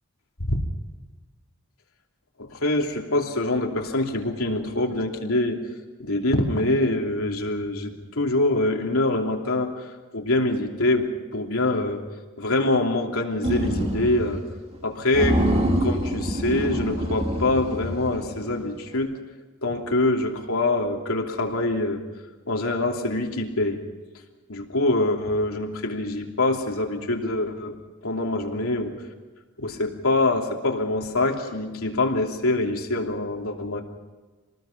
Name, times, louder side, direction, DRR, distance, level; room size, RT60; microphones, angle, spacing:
voice 1, 2.4-5.6 6.0-9.8 10.1-12.0 12.4-14.4 14.8-15.4 15.8-19.2 19.6-22.0 22.5-23.8 24.5-27.7 28.0-28.9 29.6-33.8, left 2 dB, 75° left, 1 dB, 3.0 m, -24 dB
sound 1, 13.4-14.4 14.7-14.8 15.1-18.5, right 1 dB, 25° right, 2.1 m, -25 dB
27.0 x 19.5 x 6.0 m, 1.3 s
head